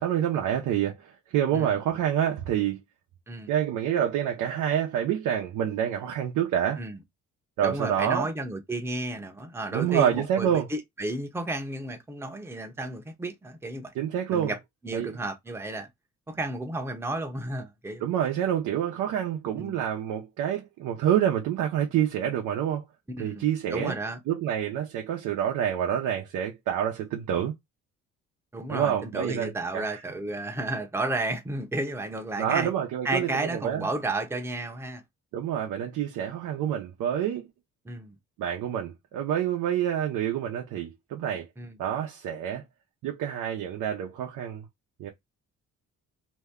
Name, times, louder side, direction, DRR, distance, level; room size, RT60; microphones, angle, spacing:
voice 1, 0.0-2.8 3.5-6.8 7.6-8.3 9.7-10.7 13.9-14.5 14.9-15.1 18.0-22.8 23.2-24.0 24.3-27.5 28.7-30.0 32.4-33.9 35.3-37.5 38.4-41.5 41.8-42.6 43.0-44.7 45.0-45.1, right 10 dB, 85° right, 0.7 m, -27 dB
voice 2, 7.6-13.9 14.3-14.6 14.8-15.9 16.3-18.0 19.6-19.8 23.1-24.2 28.5-32.7 33.0-35.0 37.8-38.2 41.6-41.8, right 2 dB, 10° right, 0.8 m, -32 dB
2.8 x 2.2 x 3.4 m
cardioid pair, 90°, 30 cm